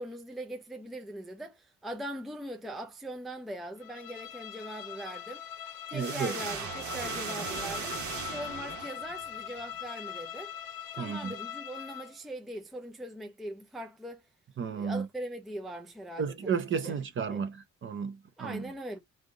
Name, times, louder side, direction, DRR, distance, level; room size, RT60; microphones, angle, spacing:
voice 1, 0.0-5.4 5.9-8.0 8.3-10.5 10.9-14.2 14.7-16.5 16.8-16.9 17.3-17.5 18.4-19.0, right 1 dB, ahead, 0.5 m, -41 dB
Bowed string instrument, 3.8-12.2, left 9 dB, 90° left, 1.1 m, -41 dB
voice 2, 5.9-6.3 11.0-11.3 14.6-15.1 16.2-18.6, right 6 dB, 35° right, 0.8 m, -33 dB
sound 1, 6.0-9.4, right 6 dB, 60° right, 1.5 m, -38 dB
3.9 x 3.4 x 3.7 m
cardioid pair, 165°, 33 cm